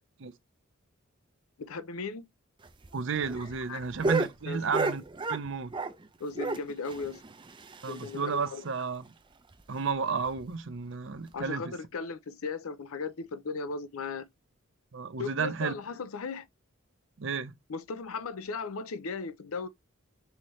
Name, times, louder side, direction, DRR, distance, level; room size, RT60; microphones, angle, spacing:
voice 1, 1.6-2.3 3.7-3.8 4.5-4.6 6.2-7.2 7.9-8.6 11.3-14.3 15.2-16.4 17.7-19.7, left 4 dB, 85° left, 0.6 m, -36 dB
sound 1, 2.6-6.1 6.3-8.3 8.6-8.7 9.0-9.1 9.5-9.6 10.2-10.5 11.3-11.4, right 3 dB, 25° right, 0.5 m, -33 dB
voice 2, 2.9-5.0 5.3-5.7 7.8-9.1 9.7-11.6 14.9-15.7 17.2-17.5, right 5 dB, 60° right, 0.6 m, -32 dB
5.6 x 2.8 x 3.2 m
head